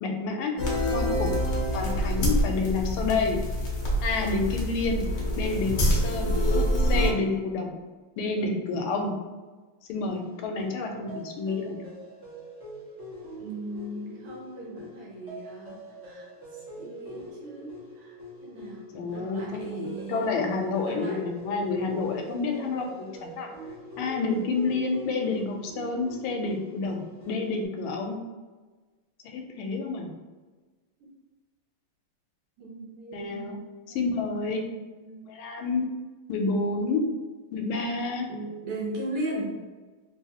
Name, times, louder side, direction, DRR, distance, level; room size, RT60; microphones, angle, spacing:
voice 1, 0.0-0.6 0.8-1.3 1.7-3.4 4.0-6.4 6.8-7.7 8.2-9.1 9.9-11.8 18.9-23.5 24.0-28.2 29.2-30.1 33.1-33.6 33.9-34.6 35.3-35.9 36.3-37.0 37.5-38.3, left 3 dB, 80° left, 3 dB, 1.4 m, -29 dB
sound 1, 0.6-7.1, equal, 55° left, 0.8 m, -26 dB
sound 2, 10.1-27.6, equal, 15° right, 0.4 m, -44 dB
voice 2, 13.4-15.8 16.0-16.3 16.8-18.1 18.4-20.3 20.8-21.2 31.0-31.1 32.6-33.5 33.9-34.2 34.6-34.8 35.0-35.3 38.3-39.6, right 1 dB, 90° right, -3 dB, 1.9 m, -37 dB
3.4 x 3.1 x 2.7 m, 1.3 s
omnidirectional pair, 2.4 m